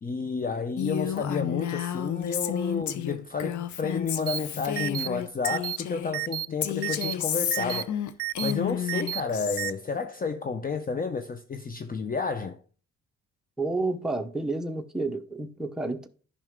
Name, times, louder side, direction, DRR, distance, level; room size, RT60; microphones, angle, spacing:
voice 1, 0.0-8.0 8.4-12.6, left 5 dB, 30° left, 0.7 m, -31 dB
Female speech woman speaking, 0.8-6.1 6.6-9.7, left 10 dB, 70° left, 0.8 m, -31 dB
sound 1, 4.3-4.4 4.8-5.1 5.4-5.8 6.1-6.5 6.8-7.1 7.5-7.8 8.2-8.5 8.9-9.2 9.6-9.7, right 16 dB, 50° right, 0.4 m, -31 dB
voice 2, 13.6-16.1, right 2 dB, ahead, 0.8 m, -30 dB
10.5 x 5.5 x 3.7 m
cardioid pair, 90°, 30 cm